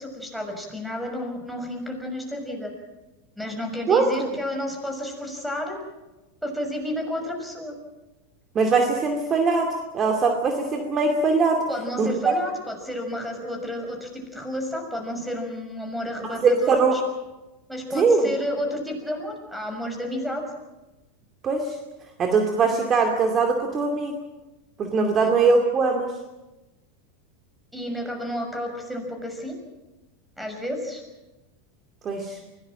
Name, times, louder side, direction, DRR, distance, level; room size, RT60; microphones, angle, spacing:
voice 1, 0.0-2.7 3.4-5.8 6.4-7.7 11.7-17.0 17.7-20.4 25.2-25.3 27.7-29.6 30.4-31.0, left 1 dB, ahead, 4 dB, 6.3 m, -31 dB
voice 2, 3.9-4.3 8.5-11.7 12.0-12.3 16.2-17.0 17.9-18.3 21.4-21.8 22.2-24.2 24.8-26.2 32.0-32.4, right 4 dB, 30° right, 4 dB, 2.5 m, -21 dB
23.5 x 18.0 x 7.7 m, 1.1 s
hypercardioid pair, 105°, 0 cm